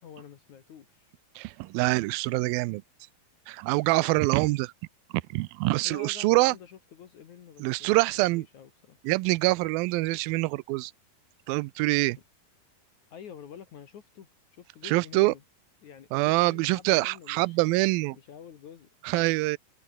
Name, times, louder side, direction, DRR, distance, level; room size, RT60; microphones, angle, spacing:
voice 1, 0.0-1.1 5.8-9.0 13.1-15.4 15.8-17.6 18.1-18.9, left 8 dB, 60° left, 2.9 m, -48 dB
voice 2, 1.4-2.8 3.5-4.7 5.3-6.6 7.6-8.5 9.0-10.9 11.5-12.2 14.8-15.3 16.1-18.2 19.0-19.6, right 22 dB, 80° right, 2.4 m, -25 dB
omnidirectional pair, 4.2 m